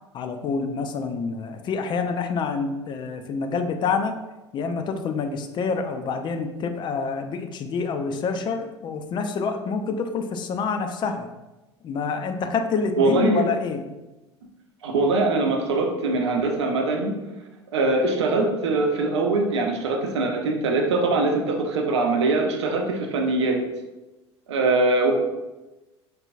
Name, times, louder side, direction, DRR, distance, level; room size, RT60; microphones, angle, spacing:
voice 1, 0.1-4.2 4.5-11.3 11.8-13.8, left 5 dB, 30° left, 7 dB, 0.4 m, -27 dB
voice 2, 13.0-13.4 14.8-17.2 17.7-23.6 24.5-25.1, right 3 dB, 70° right, 3 dB, 0.7 m, -22 dB
4.4 x 3.3 x 2.5 m, 1.1 s
figure-of-eight pair, 70°, 15 cm